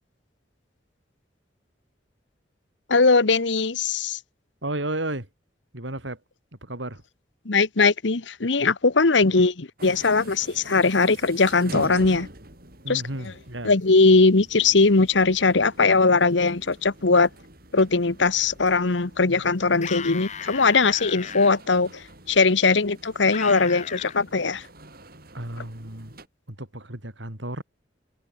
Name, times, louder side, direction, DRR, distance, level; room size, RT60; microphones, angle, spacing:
voice 1, 2.9-4.2 7.4-12.3 12.9-13.0 13.6-17.3 17.7-24.7, left 4 dB, 75° left, 1.2 m, -20 dB
voice 2, 4.6-5.3 5.7-6.2 6.6-7.0 9.3-9.4 12.8-13.7 25.3-26.2 26.5-27.6, right 1 dB, 80° right, 4.7 m, -33 dB
sound 1, 9.8-26.3, right 1 dB, 55° right, 7.9 m, -44 dB
sound 2, 19.7-21.5 23.3-24.2, left 7 dB, 40° left, 1.6 m, -36 dB
head